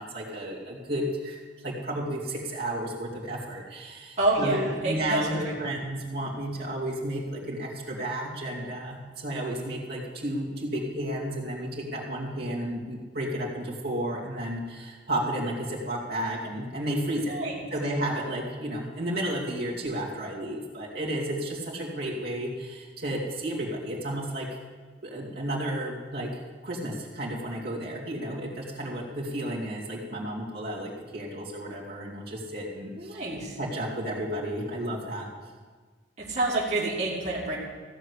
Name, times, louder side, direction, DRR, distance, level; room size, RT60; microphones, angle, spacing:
voice 1, 0.0-17.3 17.7-24.5 25.0-33.2 33.6-35.3, right 1 dB, 55° right, -5 dB, 2.5 m, -32 dB
voice 2, 4.2-5.3 5.7-5.8 17.2-17.6 32.9-33.6 36.2-37.6, right 2 dB, 40° right, -5 dB, 2.3 m, -28 dB
15.5 x 6.6 x 8.1 m, 1.5 s
head